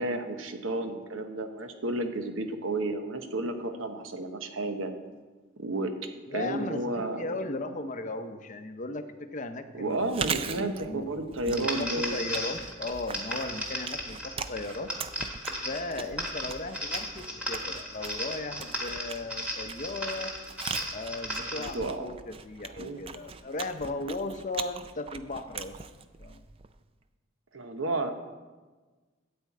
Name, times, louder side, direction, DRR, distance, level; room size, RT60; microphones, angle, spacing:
voice 1, 0.0-4.9 5.6-5.9 6.3-7.4 9.7-12.2 21.6-22.1 22.7-23.0 27.5-28.1, right 2 dB, 75° right, 6 dB, 1.1 m, -32 dB
voice 2, 6.3-10.2 10.5-11.1 11.4-14.9 15.6-20.3 20.9-26.4, left 2 dB, 40° left, 8 dB, 0.6 m, -37 dB
Chewing mastication, 10.0-26.8, right 6 dB, 30° right, 0.4 m, -40 dB
sound 1, 11.5-21.8, equal, 5° right, 1.5 m, -36 dB
12.5 x 4.4 x 8.4 m, 1.3 s
head